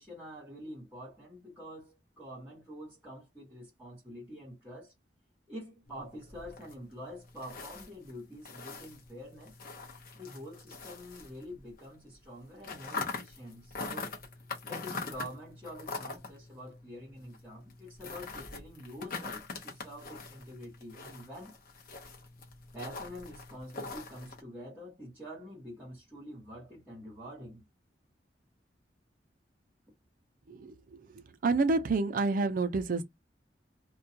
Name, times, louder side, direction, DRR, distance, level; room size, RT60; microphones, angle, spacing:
voice 1, 0.0-4.9 5.5-9.5 10.1-14.2 14.6-21.6 22.7-27.7, equal, 10° right, 1.1 m, -46 dB
sound 1, 5.9-11.9 12.1-24.4, left 4 dB, 55° left, 0.7 m, -43 dB
voice 2, 31.4-33.0, right 3 dB, 50° right, 0.4 m, -28 dB
2.3 x 2.2 x 2.6 m
head